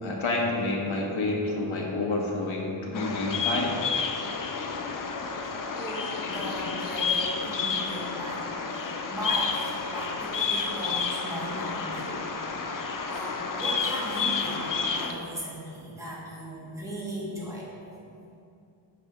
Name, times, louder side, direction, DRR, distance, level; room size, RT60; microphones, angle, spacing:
voice 1, 0.0-3.8, left 2 dB, 75° left, -1 dB, 1.3 m, -29 dB
Bird vocalization bird call bird song, 2.9-15.1, left 5 dB, 45° left, 0.5 m, -30 dB
voice 2, 5.4-12.2 13.1-17.7, right 1 dB, 5° right, -6 dB, 1.6 m, -37 dB
8.4 x 3.3 x 6.0 m, 2.6 s
wide cardioid pair, 135°, 48 cm